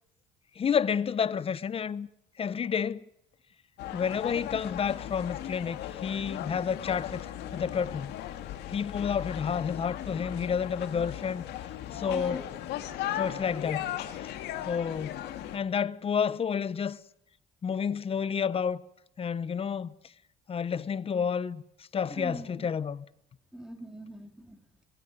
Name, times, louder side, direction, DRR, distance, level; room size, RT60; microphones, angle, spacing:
voice 1, 0.6-2.1 2.4-3.0 3.9-8.1 8.7-11.4 11.9-12.4 13.1-13.9 14.2-14.3 14.6-15.2 15.5-17.0 17.6-18.8 19.2-19.9 20.5-21.6 21.9-23.0, left 7 dB, 35° left, 0.9 m, -30 dB
sound 1, 3.8-15.6, left 12 dB, 85° left, 2.1 m, -37 dB
voice 2, 12.1-12.4 22.1-22.7 23.5-24.8, equal, 5° right, 3.3 m, -42 dB
22.0 x 16.5 x 9.5 m
cardioid pair, 110°, 17 cm